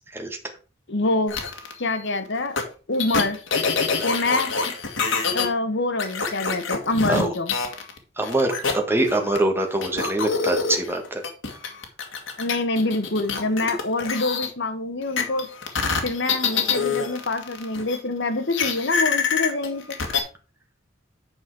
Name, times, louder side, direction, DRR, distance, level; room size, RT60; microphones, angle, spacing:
voice 1, 0.9-1.3 1.8-2.6 2.9-3.4 4.0-4.7 5.3-7.5 12.4-15.5 16.0-19.8, left 2 dB, 65° left, 1.4 m, -25 dB
sound 1, 1.3-1.7 2.6-2.7 3.0-5.4 6.0-9.4 9.8-14.5 15.2-18.0 18.5-20.2, left 5 dB, 80° left, 1.8 m, -25 dB
voice 2, 8.2-11.2, right 1 dB, 10° right, 1.5 m, -24 dB
8.8 x 5.3 x 4.7 m
head